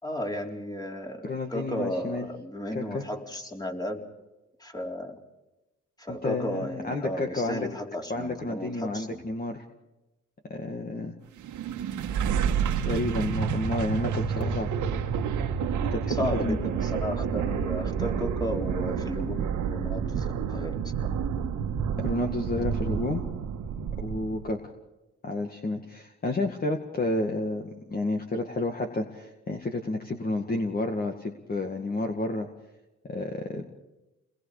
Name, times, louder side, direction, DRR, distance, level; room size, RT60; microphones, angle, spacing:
voice 1, 0.0-4.0 4.6-5.2 6.0-9.2 16.1-20.9, left 1 dB, 15° left, 2 dB, 4.0 m, -34 dB
voice 2, 1.2-2.3 2.7-3.0 6.1-7.7 8.1-9.6 10.5-11.1 12.9-14.7 15.9-16.6 22.0-23.2 24.0-24.6 25.2-32.5 33.1-33.7, left 2 dB, 30° left, 3 dB, 2.3 m, -30 dB
sound 1, 11.4-24.5, right 7 dB, 75° right, 2.0 m, -29 dB
30.0 x 21.5 x 5.1 m, 1.0 s
cardioid pair, 90°, 30 cm